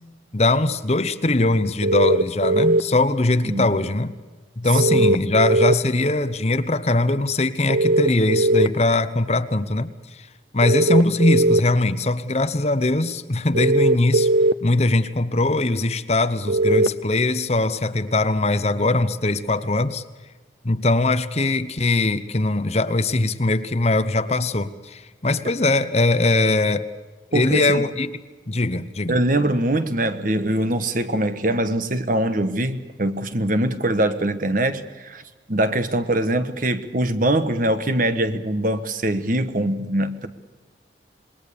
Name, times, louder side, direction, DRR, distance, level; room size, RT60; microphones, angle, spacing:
voice 1, 0.3-4.1 4.6-10.3 10.5-14.3 14.6-20.0 20.6-26.9 27.3-28.1 28.5-29.2, left 2 dB, 35° left, 11 dB, 1.0 m, -21 dB
sound 1, 1.8-2.8 4.8-5.7 7.7-8.7 10.6-11.6 13.5-14.5 16.5-16.9, right 2 dB, 65° right, 0.6 m, -18 dB
voice 2, 3.4-3.8 4.9-5.1 27.3-27.8 29.1-35.2 35.5-40.3, right 1 dB, 45° right, 10 dB, 1.4 m, -23 dB
27.0 x 21.0 x 6.9 m, 1.3 s
head